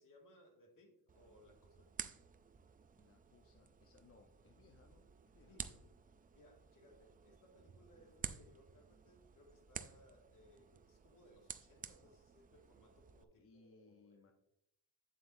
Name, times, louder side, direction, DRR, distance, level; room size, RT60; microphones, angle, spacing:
voice 1, 0.0-1.9 5.5-5.9 6.3-14.3, equal, 50° left, 2 dB, 2.1 m, -66 dB
sound 1, 1.1-13.2, right 6 dB, 20° right, 0.4 m, -52 dB
voice 2, 3.0-5.8 13.3-14.3, left 4 dB, 30° left, 4 dB, 0.8 m, -67 dB
8.9 x 7.5 x 2.6 m, 0.81 s
cardioid pair, 110°, 43 cm